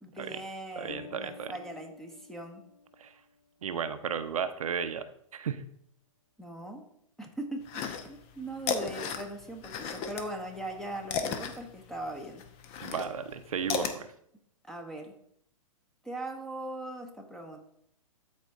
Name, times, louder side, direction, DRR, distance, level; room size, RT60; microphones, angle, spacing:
voice 1, 0.0-2.6 6.4-6.8 7.2-12.4 14.6-15.1 16.0-17.6, right 1 dB, ahead, 4 dB, 1.1 m, -40 dB
voice 2, 0.8-1.5 3.0-3.1 3.6-5.0 5.3-5.6 12.8-14.1, right 7 dB, 75° right, 10 dB, 0.7 m, -34 dB
Bass guitar, 0.9-3.3, left 5 dB, 85° left, 1.0 m, -50 dB
sound 1, 7.7-8.3 8.6-10.3 10.6-14.0, left 6 dB, 35° left, 0.9 m, -34 dB
13.0 x 4.3 x 3.6 m, 0.71 s
hypercardioid pair, 120°, 18 cm